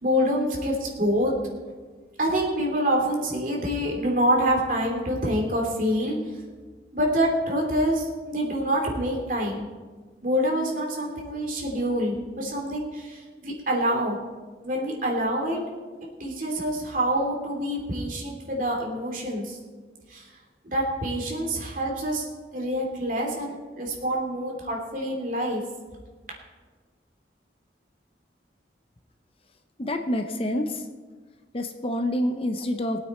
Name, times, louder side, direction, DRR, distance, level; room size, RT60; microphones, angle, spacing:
voice 1, 0.0-1.3 2.2-6.2 6.9-9.6 10.2-14.2 14.6-15.6 16.2-19.6 20.1-20.2 20.6-22.3 22.5-25.6, equal, 50° right, -1 dB, 2.9 m, -26 dB
voice 2, 29.8-30.8 31.5-33.0, left 1 dB, 30° left, 6 dB, 0.8 m, -27 dB
20.5 x 8.9 x 4.4 m, 1.4 s
head